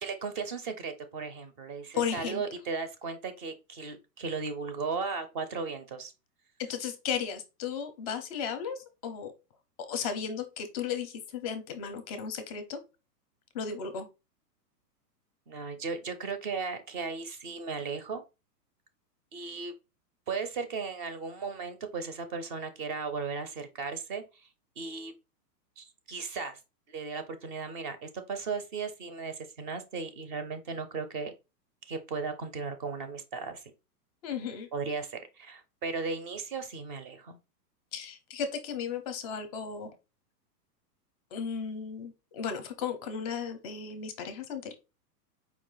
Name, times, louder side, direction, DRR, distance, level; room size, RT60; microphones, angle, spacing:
voice 1, 0.0-6.1 15.5-18.2 19.3-19.7 20.3-24.5 24.8-25.1 25.8-26.6 26.9-31.3 31.8-33.6 34.7-37.4, right 4 dB, 30° right, 0.6 m, -36 dB
voice 2, 1.9-2.4 6.7-9.3 9.9-12.8 13.5-14.1 34.2-34.7 37.9-39.9 41.3-44.7, left 6 dB, 25° left, 0.5 m, -35 dB
4.7 x 2.4 x 3.8 m
hypercardioid pair, 150°, 49 cm